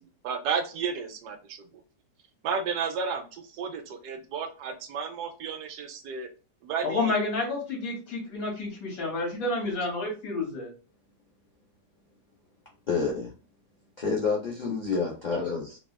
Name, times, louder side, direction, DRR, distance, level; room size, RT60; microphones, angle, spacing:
voice 1, 0.2-1.7 2.4-6.3 6.6-7.1 15.3-15.4, right 6 dB, 75° right, 1.1 m, -32 dB
voice 2, 6.8-10.7, left 3 dB, 60° left, 1.7 m, -30 dB
voice 3, 12.9-13.3 14.0-15.8, left 4 dB, 85° left, 0.4 m, -28 dB
3.4 x 2.3 x 2.2 m
omnidirectional pair, 1.8 m